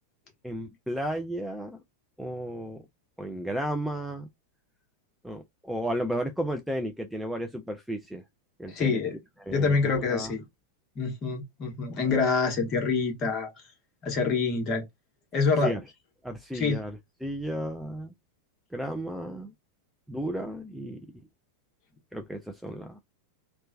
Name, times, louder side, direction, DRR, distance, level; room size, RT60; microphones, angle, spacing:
voice 1, 0.4-1.8 2.2-2.8 3.2-4.3 5.2-8.2 8.6-9.0 9.4-10.3 15.6-15.8 16.2-18.1 18.7-19.5 20.1-21.0 22.1-23.0, equal, ahead, 0.4 m, -33 dB
voice 2, 8.7-9.1 9.5-10.4 11.0-13.5 14.0-14.8 15.3-15.7 16.5-16.8, left 4 dB, 35° left, 1.2 m, -26 dB
2.9 x 2.1 x 2.5 m
figure-of-eight pair, 90°, 0 cm